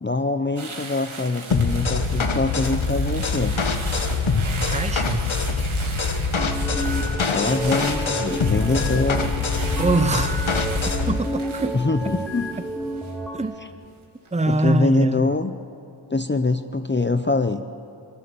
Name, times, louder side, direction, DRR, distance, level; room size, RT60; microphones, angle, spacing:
voice 1, 0.0-3.6 7.3-9.3 11.7-12.5 14.5-15.5 16.1-17.6, left 3 dB, 25° left, 8 dB, 0.8 m, -24 dB
sound 1, 0.6-13.9 14.3-14.6, right 3 dB, 80° right, 2.5 m, -38 dB
sound 2, 1.5-11.2, left 4 dB, 75° left, 1.4 m, -24 dB
voice 2, 4.7-5.3 9.8-10.5 11.1-11.8 13.3-13.5 14.3-15.3, right 2 dB, 15° right, 12 dB, 0.8 m, -23 dB
sound 3, 6.3-13.4, right 1 dB, ahead, 2.9 m, -31 dB
23.0 x 20.5 x 7.0 m, 2.6 s
cardioid pair, 45°, 48 cm